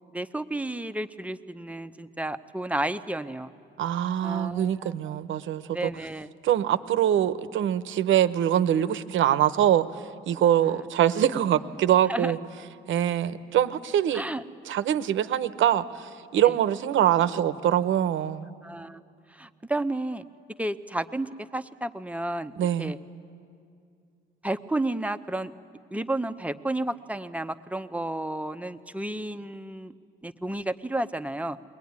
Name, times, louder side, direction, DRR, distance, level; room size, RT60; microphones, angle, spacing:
voice 1, 0.1-3.5 4.2-5.2 5.7-6.3 10.7-10.8 12.1-12.3 14.1-14.4 16.4-16.6 18.6-19.0 19.3-20.2 20.6-23.0 24.4-25.5 25.9-29.9 30.2-31.6, right 1 dB, 5° right, 9 dB, 0.8 m, -32 dB
voice 2, 3.8-5.9 6.4-9.9 10.3-12.4 12.9-14.2 14.7-18.5 22.6-22.9, right 11 dB, 75° right, 13 dB, 0.9 m, -24 dB
22.0 x 19.5 x 9.6 m, 2.4 s
cardioid pair, 90°, 20 cm